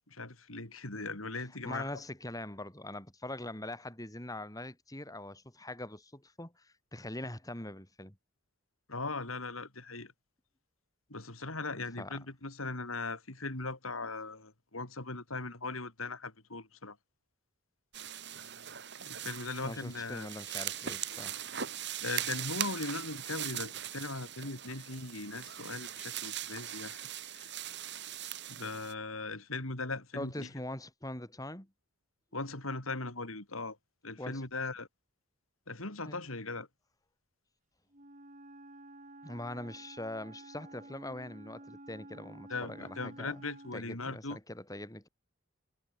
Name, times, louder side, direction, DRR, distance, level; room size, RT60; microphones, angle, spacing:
voice 1, 0.1-1.9 8.9-10.1 11.1-17.0 19.0-20.3 22.0-27.0 27.3-27.5 28.5-30.5 32.3-33.8 34.0-34.9 35.7-36.7 42.5-44.4, left 3 dB, 85° left, 4.9 m, -39 dB
voice 2, 1.6-8.1 11.7-12.2 19.6-21.4 30.1-31.7 34.2-34.4 36.0-36.2 39.2-43.4 43.7-45.1, left 1 dB, 15° left, 4.8 m, -43 dB
sound 1, 17.9-28.9, right 10 dB, 55° right, 5.6 m, -40 dB
Wind instrument woodwind instrument, 37.9-43.9, right 1 dB, 40° right, 6.4 m, -51 dB
head